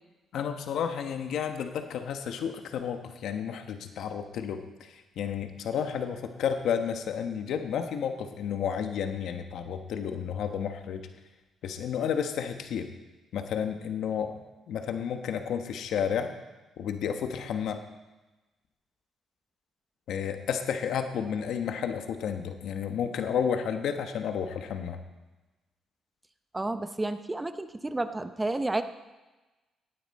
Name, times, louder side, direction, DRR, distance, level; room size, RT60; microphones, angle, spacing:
voice 1, 0.3-11.0 11.6-12.9 13.3-14.3 14.7-16.3 16.8-17.8 20.1-25.0, left 7 dB, 75° left, 6 dB, 1.1 m, -31 dB
voice 2, 26.5-28.8, right 2 dB, 15° right, 9 dB, 0.8 m, -31 dB
17.0 x 9.5 x 4.2 m, 1.1 s
cardioid pair, 90°, 0 cm